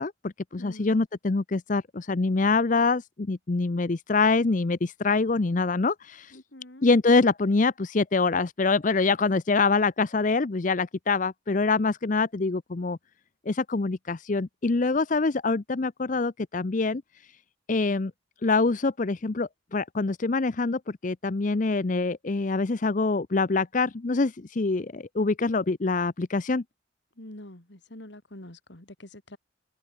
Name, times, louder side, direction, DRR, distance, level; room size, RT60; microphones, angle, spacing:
voice 1, 0.0-6.4 6.8-13.0 13.5-17.4 17.7-18.1 18.4-26.6, left 3 dB, 40° left, 0.6 m, -25 dB
voice 2, 0.6-1.0 6.3-6.9 27.2-29.4, left 1 dB, 65° left, 2.8 m, -45 dB
head